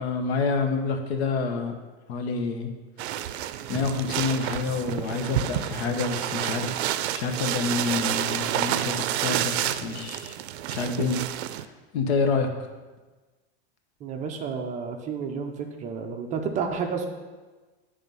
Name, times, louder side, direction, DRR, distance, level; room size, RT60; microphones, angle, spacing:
voice 1, 0.0-1.7 2.1-2.7 3.7-10.4 10.7-11.2 11.6-12.5, left 4 dB, 80° left, 6 dB, 1.0 m, -28 dB
sound 1, 3.0-11.6, right 12 dB, 80° right, 0.5 m, -29 dB
voice 2, 14.0-17.1, right 5 dB, 25° right, 4 dB, 0.5 m, -31 dB
9.1 x 3.4 x 5.4 m, 1.3 s
supercardioid pair, 150°, 32 cm